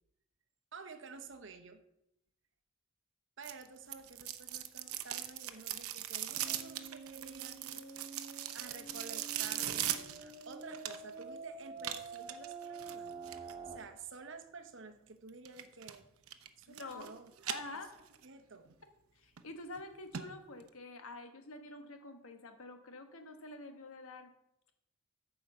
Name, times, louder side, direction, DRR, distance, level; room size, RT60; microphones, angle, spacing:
voice 1, 0.7-1.8 3.4-7.9 8.5-16.1 16.6-17.3 17.7-17.8 18.2-18.7, right 4 dB, 60° right, 7 dB, 0.8 m, -51 dB
sound 1, 3.4-11.2 11.8-13.5 15.5-16.0 16.3-17.1 17.4-18.3 18.7-18.8 19.4-19.5 19.8-19.9 20.1-20.2 20.6-20.7, right 12 dB, 85° right, 0.7 m, -40 dB
sound 2, 6.4-13.8, right 4 dB, 25° right, 1.4 m, -48 dB
voice 2, 16.7-17.1 17.5-17.9 19.1-24.3, left 2 dB, 80° left, 6 dB, 1.2 m, -47 dB
8.9 x 4.9 x 6.8 m, 0.84 s
head